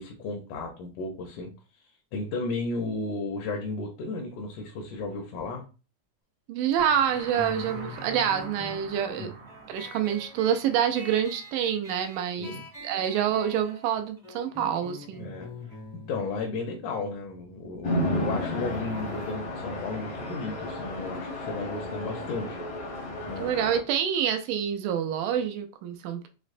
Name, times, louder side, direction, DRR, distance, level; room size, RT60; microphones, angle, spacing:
voice 1, 0.0-1.5 2.1-5.6 9.2-9.3 12.4-12.6 15.2-15.5 16.1-22.6 23.3-23.5, left 3 dB, 80° left, 1 dB, 2.2 m, -34 dB
voice 2, 6.5-9.3 9.7-12.6 12.8-15.3 23.4-26.3, right 9 dB, 90° right, 7 dB, 2.2 m, -27 dB
sound 1, 6.8-12.2, right 3 dB, 70° right, 1.9 m, -45 dB
sound 2, 7.4-18.5, left 1 dB, 5° right, 0.4 m, -45 dB
Chatter / Traffic noise roadway noise / Train, 17.8-23.8, left 1 dB, 60° left, 0.8 m, -32 dB
6.0 x 2.1 x 2.5 m, 0.33 s
omnidirectional pair, 3.6 m